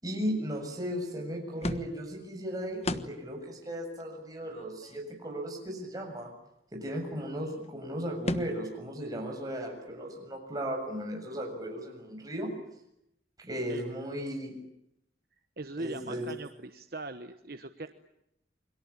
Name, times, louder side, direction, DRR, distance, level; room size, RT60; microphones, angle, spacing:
voice 1, 0.0-6.3 6.7-12.6 13.4-14.6 15.8-16.3, equal, 20° right, 2 dB, 7.2 m, -36 dB
sound 1, 1.6-2.2 2.8-3.3 3.7-3.8 4.0-4.1 4.4-5.5 7.4-7.5 7.6-7.7 8.3-8.7, left 1 dB, 35° left, 1.2 m, -36 dB
voice 2, 15.6-17.9, right 2 dB, 55° right, 8 dB, 1.2 m, -40 dB
29.5 x 23.0 x 8.7 m, 0.80 s
head